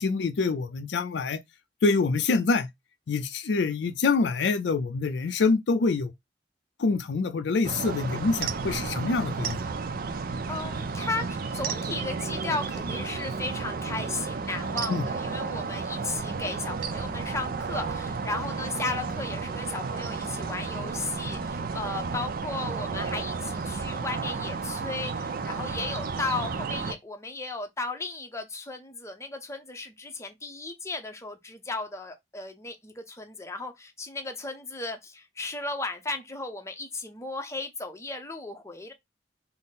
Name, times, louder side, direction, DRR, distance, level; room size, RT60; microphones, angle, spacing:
voice 1, 0.0-1.4 1.8-2.7 3.1-6.1 6.8-9.6 14.9-15.0, left 4 dB, 70° left, 0.4 m, -25 dB
sound 1, 7.6-26.9, right 4 dB, 55° right, 0.4 m, -32 dB
voice 2, 10.5-38.9, left 3 dB, 15° left, 0.6 m, -35 dB
3.7 x 2.0 x 4.1 m
head